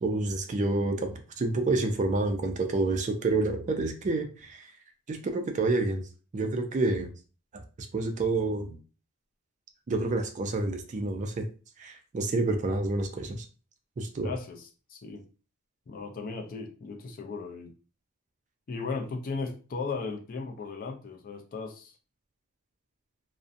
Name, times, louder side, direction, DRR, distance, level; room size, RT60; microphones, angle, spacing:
voice 1, 0.0-4.7 5.1-7.1 7.5-8.8 9.9-11.5 11.8-13.5 14.0-14.3, right 2 dB, 35° right, 5 dB, 0.3 m, -29 dB
voice 2, 14.2-15.3 15.9-17.7 18.7-22.0, left 4 dB, 40° left, 5 dB, 0.4 m, -36 dB
2.5 x 2.1 x 2.5 m, 0.36 s
head